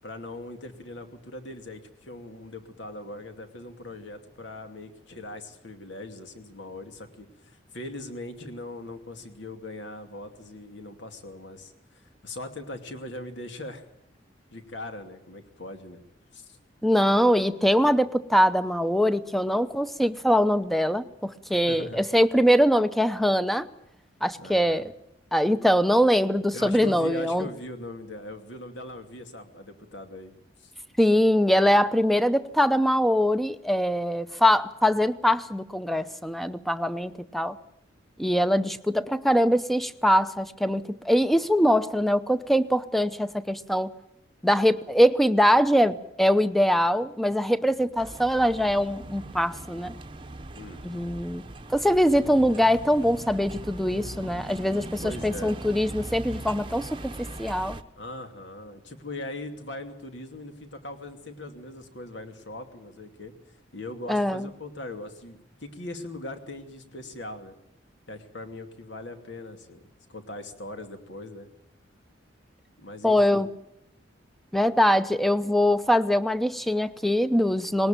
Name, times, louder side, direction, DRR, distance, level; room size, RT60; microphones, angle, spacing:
voice 1, 0.0-13.8 14.5-16.0 16.3-16.6 21.6-22.0 24.4-24.9 26.5-30.3 30.6-30.7 47.6-47.9 50.5-51.1 55.0-55.6 58.0-63.3 63.7-67.6 68.1-71.5 72.8-73.4, left 2 dB, 70° left, 6 dB, 2.6 m, -40 dB
voice 2, 16.8-23.7 24.2-24.9 25.3-27.5 31.0-37.6 38.2-43.9 44.4-49.9 50.8-51.4 51.7-57.8 64.1-64.5 73.0-73.5 74.5-77.9, equal, ahead, 12 dB, 0.8 m, -23 dB
sound 1, 48.0-57.8, right 2 dB, 25° right, 0.9 m, -40 dB
19.5 x 18.5 x 9.0 m, 0.77 s
head